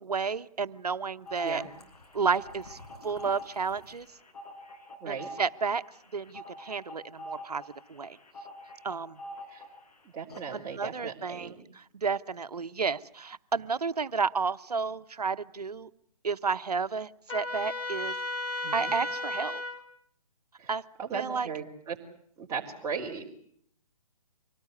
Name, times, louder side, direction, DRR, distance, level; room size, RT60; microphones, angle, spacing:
voice 1, 0.0-1.6 2.1-4.1 5.1-5.8 6.1-7.6 7.9-8.2 8.8-9.2 10.5-15.9 16.2-18.1 18.7-19.6 20.7-20.8 21.1-21.5, right 5 dB, 85° right, 13 dB, 1.1 m, -31 dB
sound 1, 1.3-9.9 10.3-10.4, left 1 dB, 80° left, 6.0 m, -45 dB
voice 2, 10.1-11.6 18.6-18.9 20.6-20.7 21.0-22.0 22.4-23.3, right 6 dB, 15° right, -2 dB, 3.9 m, -37 dB
Trumpet, 17.3-19.8, left 2 dB, 20° left, 3.7 m, -34 dB
25.0 x 18.5 x 9.7 m, 0.67 s
hypercardioid pair, 140°, 20 cm